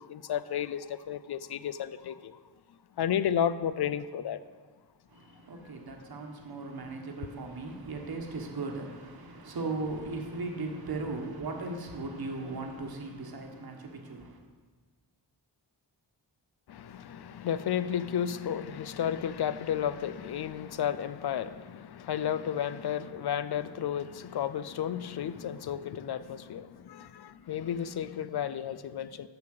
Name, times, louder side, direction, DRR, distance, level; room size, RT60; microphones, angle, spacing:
voice 1, 0.0-2.4 3.0-4.4 16.7-29.3, left 9 dB, 60° left, 14 dB, 0.5 m, -32 dB
voice 2, 5.1-14.4, right 3 dB, 55° right, 3 dB, 1.3 m, -37 dB
7.1 x 5.9 x 6.6 m, 1.4 s
cardioid pair, 60°, 45 cm